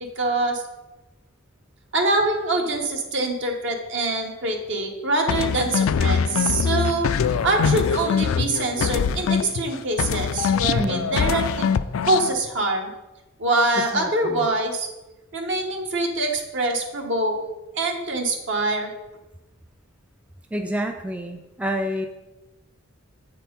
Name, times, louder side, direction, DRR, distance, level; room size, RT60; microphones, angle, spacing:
voice 1, 0.2-0.6 1.9-7.1 7.4-11.7 12.0-12.9 13.4-14.9 15.3-17.4 17.7-18.9, right 2 dB, 60° right, 2 dB, 1.2 m, -24 dB
sound 1, 5.3-9.7 10.0-12.3, left 6 dB, 75° left, 0.4 m, -23 dB
voice 2, 10.8-11.1 13.8-14.5 20.5-22.1, equal, 5° right, 5 dB, 0.3 m, -29 dB
7.9 x 4.5 x 5.3 m, 1.1 s
head